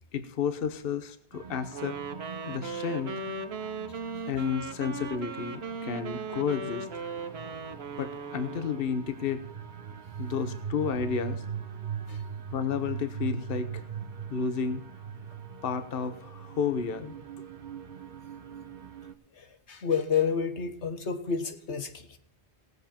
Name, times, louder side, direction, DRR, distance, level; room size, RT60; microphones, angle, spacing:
voice 1, 0.1-2.0 2.5-3.1 4.3-6.9 8.0-9.4 10.2-11.4 12.5-13.8 14.3-14.8 15.6-17.1, left 6 dB, 60° left, 10 dB, 1.1 m, -31 dB
sound 1, 1.3-19.1, right 7 dB, 50° right, 0.9 m, -41 dB
Wind instrument woodwind instrument, 1.7-8.9, right 4 dB, 70° right, 1.3 m, -38 dB
voice 2, 3.9-4.2 12.1-12.2 19.3-22.2, left 6 dB, 90° left, 7 dB, 1.7 m, -30 dB
18.0 x 8.0 x 4.3 m, 0.69 s
omnidirectional pair, 1.1 m